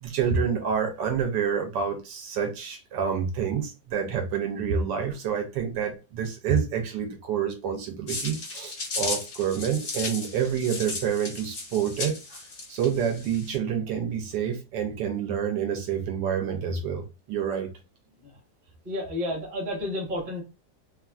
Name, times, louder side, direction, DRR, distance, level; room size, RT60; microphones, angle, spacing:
voice 1, 0.0-12.4 12.7-17.7, right 7 dB, 80° right, 1.2 m, -28 dB
sound 1, 8.1-13.6, left 3 dB, 50° left, 0.6 m, -35 dB
voice 2, 18.8-20.4, left 1 dB, 30° right, 1.0 m, -31 dB
2.9 x 2.4 x 2.3 m
omnidirectional pair, 2.0 m